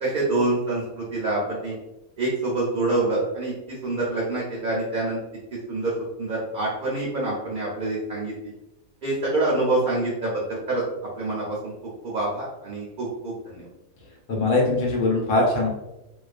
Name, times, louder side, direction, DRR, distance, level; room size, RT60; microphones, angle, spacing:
voice 1, 0.0-1.7 2.2-5.2 5.7-5.9 6.2-8.5 9.0-10.8 11.2-11.7 12.0-13.6, right 2 dB, 55° right, -5 dB, 0.5 m, -26 dB
voice 2, 14.3-15.7, left 2 dB, 90° left, -1 dB, 1.2 m, -21 dB
2.3 x 2.3 x 2.4 m, 0.94 s
omnidirectional pair, 1.5 m